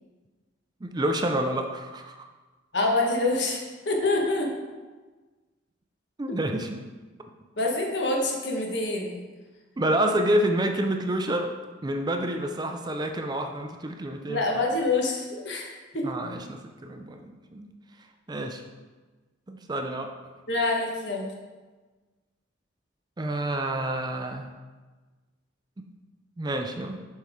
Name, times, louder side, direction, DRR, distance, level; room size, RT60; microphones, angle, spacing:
voice 1, 0.8-2.3 6.2-6.8 9.8-11.5 11.8-14.4 16.0-17.7 18.3-18.6 19.5-20.1 23.2-24.5 26.4-27.1, right 1 dB, 20° right, 5 dB, 0.4 m, -28 dB
voice 2, 2.7-4.5 6.3-6.4 7.6-9.3 14.3-16.1 20.5-21.3, left 2 dB, 65° left, 0 dB, 1.3 m, -26 dB
7.5 x 5.5 x 3.6 m, 1.3 s
head